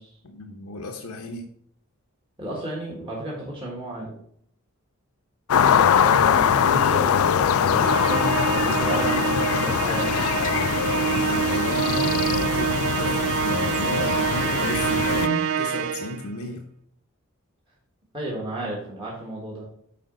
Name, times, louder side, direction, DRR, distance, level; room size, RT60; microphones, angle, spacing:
voice 1, 0.2-1.5 11.1-16.7, left 2 dB, 90° left, 3 dB, 0.9 m, -34 dB
voice 2, 2.4-4.1 5.6-10.2 18.1-19.7, right 1 dB, 25° right, -5 dB, 1.5 m, -33 dB
sound 1, 5.5-15.3, left 7 dB, 70° left, 0.4 m, -22 dB
Musical instrument, 7.8-16.3, right 8 dB, 60° right, 0.4 m, -26 dB
sound 2, 10.4-12.4, left 2 dB, 35° left, 0.8 m, -43 dB
8.6 x 5.0 x 3.8 m, 0.69 s
head